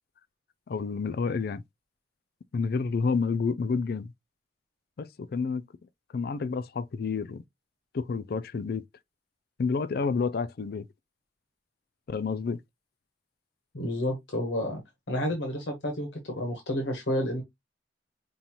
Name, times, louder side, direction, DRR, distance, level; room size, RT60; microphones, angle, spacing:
voice 1, 0.7-1.6 2.5-4.1 5.0-5.6 6.1-7.4 7.9-8.8 9.6-10.9 12.1-12.6, left 4 dB, 60° left, 0.4 m, -29 dB
voice 2, 13.7-14.8 15.1-17.4, left 1 dB, 90° left, 1.2 m, -30 dB
5.4 x 2.5 x 2.9 m
head